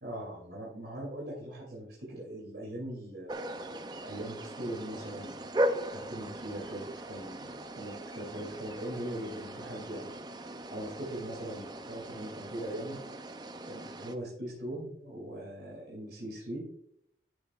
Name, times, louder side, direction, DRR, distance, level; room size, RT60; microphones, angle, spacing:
voice 1, 0.0-10.1 10.7-13.0 13.6-16.6, right 1 dB, 70° right, -4 dB, 2.7 m, -41 dB
sound 1, 3.3-14.2, right 1 dB, 25° right, 0.5 m, -38 dB
11.0 x 7.8 x 2.4 m, 0.72 s
head